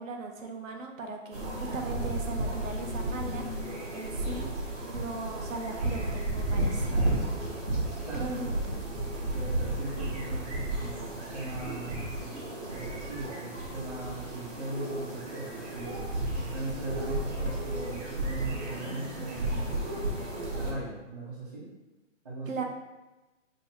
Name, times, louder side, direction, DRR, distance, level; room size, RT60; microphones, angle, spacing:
voice 1, 0.0-3.5 3.9-6.9 8.1-8.8 22.5-22.6, right 3 dB, 80° right, 3 dB, 0.8 m, -38 dB
sound 1, 1.3-20.7, right 1 dB, 60° right, 1.3 m, -33 dB
voice 2, 8.0-8.5 9.3-12.4 12.7-19.8 20.5-21.7 22.2-22.6, right 2 dB, 25° right, -13 dB, 0.9 m, -39 dB
3.4 x 2.3 x 4.2 m, 1.1 s
hypercardioid pair, 170°, 39 cm